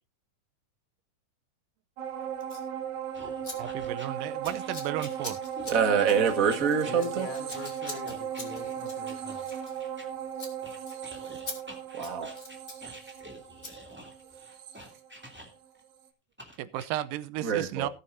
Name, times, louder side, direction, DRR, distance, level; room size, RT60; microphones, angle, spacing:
sound 1, 2.0-15.7 16.0-16.1, right 8 dB, 60° right, 2.6 m, -37 dB
Scissors, 2.4-2.7 3.4-3.6 3.8-4.1 4.4-10.1 10.3-10.5 10.9-11.0 11.5-11.6 11.9-12.8 13.6-13.7, left 2 dB, 20° left, 3.1 m, -43 dB
sound 2, 3.1-10.1 10.6-15.8 16.4-16.9, equal, 5° right, 2.3 m, -48 dB
voice 1, 3.6-5.4 16.6-17.9, right 13 dB, 80° right, 2.4 m, -34 dB
voice 2, 5.6-7.3 12.0-12.3 17.4-17.9, right 7 dB, 35° right, 1.6 m, -25 dB
voice 3, 6.8-9.5, left 5 dB, 70° left, 4.6 m, -43 dB
19.0 x 9.4 x 2.7 m
omnidirectional pair, 3.9 m